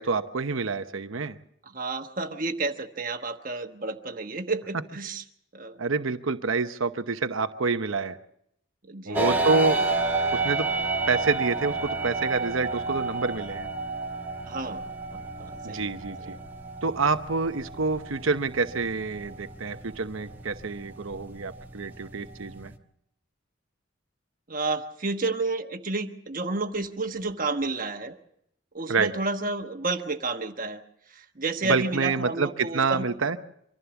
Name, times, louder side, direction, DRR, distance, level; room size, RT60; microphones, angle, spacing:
voice 1, 0.0-1.4 5.8-8.2 9.1-9.8 10.3-10.7 11.1-13.7 15.6-16.4 16.8-22.7 28.9-29.1 31.6-33.4, right 4 dB, 85° right, 9 dB, 0.9 m, -27 dB
voice 2, 1.6-5.2 5.5-5.8 8.9-9.5 14.5-14.8 15.1-15.9 16.2-16.3 24.5-28.2 28.7-30.8 31.1-33.1, right 3 dB, 45° right, 5 dB, 1.2 m, -31 dB
sound 1, 9.1-22.8, right 3 dB, 10° right, 1.1 m, -31 dB
25.0 x 15.0 x 7.1 m, 0.75 s
head